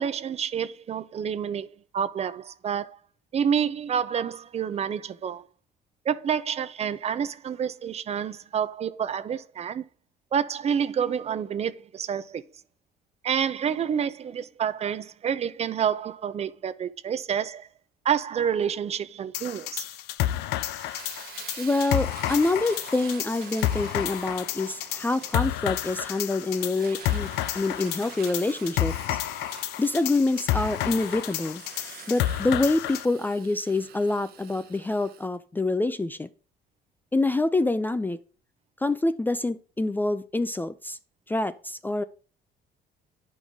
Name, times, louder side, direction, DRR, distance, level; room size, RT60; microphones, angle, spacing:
voice 1, 0.0-1.7 1.9-3.0 3.3-5.4 6.0-9.8 10.3-12.4 13.2-17.7 18.0-19.8, right 8 dB, 40° right, 0.5 m, -28 dB
sound 1, 19.3-33.1, left 13 dB, 85° left, 0.5 m, -30 dB
Fire, 20.6-35.3, right 9 dB, 65° right, 0.9 m, -46 dB
voice 2, 21.6-27.3 27.5-29.2 29.8-31.6 32.1-36.3 37.1-38.2 38.8-41.0 41.3-42.0, left 2 dB, 10° left, 0.4 m, -26 dB
10.0 x 5.4 x 3.6 m
cardioid pair, 110°, 17 cm